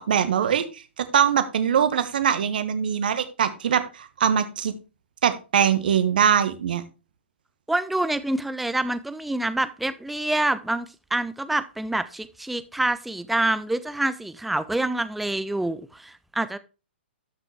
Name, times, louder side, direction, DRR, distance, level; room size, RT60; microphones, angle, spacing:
voice 1, 0.0-4.7 5.2-6.8, right 8 dB, 50° right, 1.4 m, -22 dB
voice 2, 7.7-16.6, right 2 dB, ahead, 0.4 m, -26 dB
12.5 x 5.8 x 3.4 m
figure-of-eight pair, 120°, 6 cm